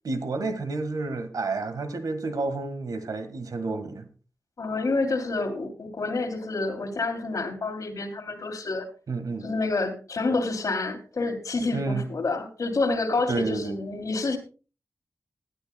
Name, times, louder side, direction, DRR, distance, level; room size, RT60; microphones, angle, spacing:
voice 1, 0.0-4.1 9.1-9.5 11.7-12.1 13.3-13.8, right 3 dB, 90° right, 1.7 m, -30 dB
voice 2, 4.6-8.9 9.4-14.4, left 3 dB, 65° left, 3.0 m, -28 dB
19.0 x 11.5 x 2.3 m
wide cardioid pair, 100°, 6 cm